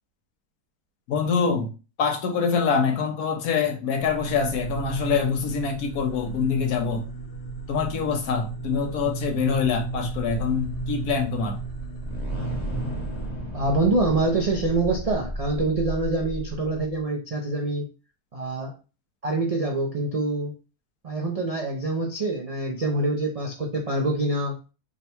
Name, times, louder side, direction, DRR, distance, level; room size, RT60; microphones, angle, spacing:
voice 1, 1.1-1.7 2.0-7.1 7.7-11.6, left 6 dB, 75° left, 1.3 m, -25 dB
sound 1, 4.0-13.3, right 3 dB, 50° left, 0.7 m, -35 dB
sound 2, 8.5-16.9, equal, 30° left, 1.0 m, -34 dB
voice 2, 13.5-17.9 18.3-18.8 19.2-20.5 21.0-24.6, right 2 dB, 70° right, 0.3 m, -25 dB
3.6 x 2.2 x 4.2 m
omnidirectional pair, 1.6 m